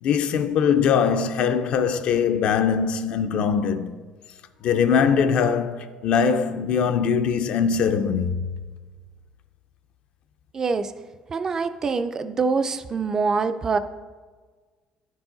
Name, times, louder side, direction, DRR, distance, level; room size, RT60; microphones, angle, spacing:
voice 1, 0.0-3.9 4.6-8.5, left 6 dB, 55° left, 0.4 m, -22 dB
voice 2, 10.5-10.9 11.3-13.8, right 4 dB, 25° right, 0.3 m, -24 dB
10.5 x 4.7 x 3.8 m
cardioid pair, 170°, 2 cm